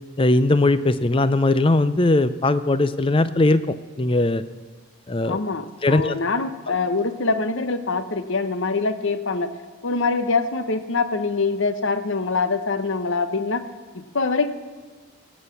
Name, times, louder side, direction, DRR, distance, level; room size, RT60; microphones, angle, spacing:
voice 1, 0.2-4.4 5.1-5.4 5.8-6.2, left 2 dB, 25° left, 14 dB, 0.5 m, -19 dB
voice 2, 5.2-9.5 9.8-13.6 13.9-14.5, left 4 dB, 60° left, 10 dB, 0.9 m, -24 dB
17.5 x 7.9 x 8.3 m, 1.5 s
head